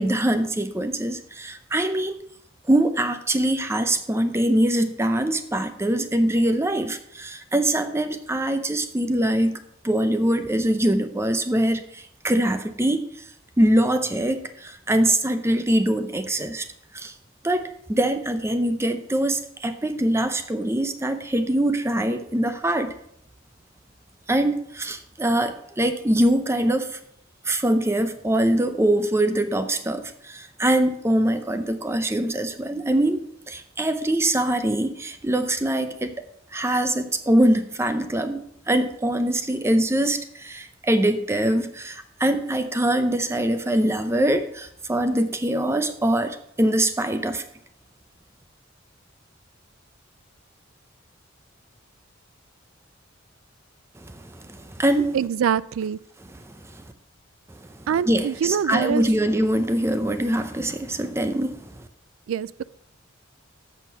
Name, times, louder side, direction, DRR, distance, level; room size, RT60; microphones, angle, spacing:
voice 1, 0.0-2.2 2.7-9.6 9.8-13.0 13.6-16.6 16.9-17.1 17.4-22.9 24.3-26.9 27.5-36.2 36.5-47.4 54.0-55.2 58.1-61.6, right 1 dB, 15° right, 9 dB, 0.6 m, -23 dB
voice 2, 55.1-56.0 57.9-59.1 62.3-62.6, right 8 dB, 85° right, 18 dB, 0.3 m, -24 dB
7.4 x 6.4 x 5.3 m, 0.72 s
head